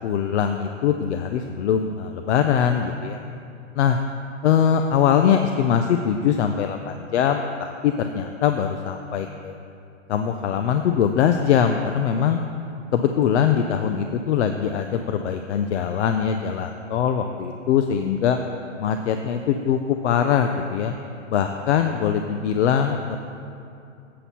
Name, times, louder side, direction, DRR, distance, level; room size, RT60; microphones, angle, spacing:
voice 1, 0.0-3.2 3.7-4.0 4.4-9.6 10.1-12.4 12.9-18.4 18.8-20.9 21.3-23.2, left 8 dB, 65° left, 6 dB, 0.5 m, -22 dB
7.5 x 6.8 x 4.2 m, 2.5 s
hypercardioid pair, 145°, 38 cm